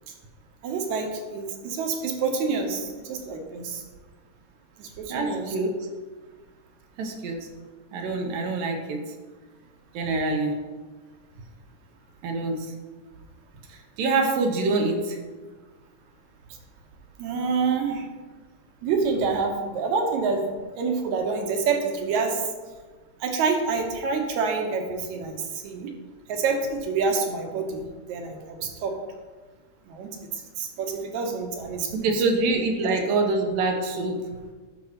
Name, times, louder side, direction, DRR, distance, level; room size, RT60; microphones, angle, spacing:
voice 1, 0.6-3.8 4.8-5.6 17.2-18.1 18.8-20.5 20.7-22.4 23.2-25.9 26.3-29.0 29.9-30.1 30.6-32.1 32.8-33.0, right 4 dB, 70° right, 3 dB, 2.1 m, -27 dB
voice 2, 5.1-5.8 7.0-7.5 7.9-9.0 9.9-10.6 12.2-12.7 13.7-15.2 32.0-34.2, right 3 dB, 85° right, 2 dB, 2.7 m, -25 dB
12.5 x 6.1 x 2.9 m, 1.3 s
omnidirectional pair, 3.9 m